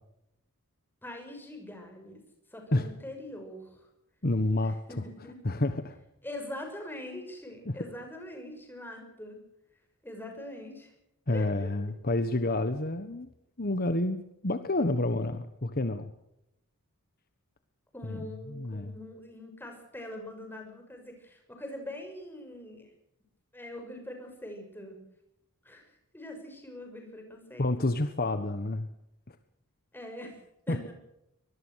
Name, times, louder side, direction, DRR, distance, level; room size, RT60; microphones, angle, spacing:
voice 1, 1.0-2.2 2.5-3.9 4.6-5.4 6.2-9.4 10.0-10.9 11.3-11.7 17.9-22.9 23.5-25.0 25.6-27.9 29.9-30.4 30.7-30.9, left 1 dB, 10° left, 4 dB, 6.2 m, -43 dB
voice 2, 4.2-5.1 5.4-6.0 7.7-7.8 11.3-13.3 13.6-14.2 14.4-16.1 18.0-18.9 27.6-28.9 29.3-29.4 30.7-30.8, left 2 dB, 45° left, 10 dB, 1.3 m, -29 dB
24.0 x 21.0 x 6.5 m, 0.83 s
head